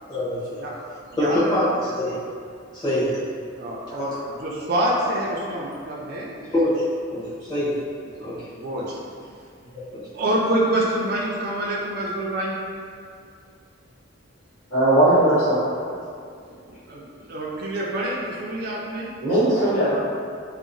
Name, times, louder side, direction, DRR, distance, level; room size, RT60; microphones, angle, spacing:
voice 1, 0.1-0.4 1.2-2.2 2.7-3.1 6.5-6.7 7.1-7.7 8.2-8.3 9.7-9.8, left 1 dB, 20° left, -13 dB, 0.9 m, -23 dB
voice 2, 1.1-1.8 3.6-6.3 8.2-9.0 10.1-12.6 16.9-17.0 17.3-19.1, right 1 dB, 45° right, -4 dB, 0.3 m, -26 dB
voice 3, 14.7-15.6 19.2-19.9, right 1 dB, 70° left, -15 dB, 1.4 m, -18 dB
2.8 x 2.0 x 2.5 m, 2.3 s
head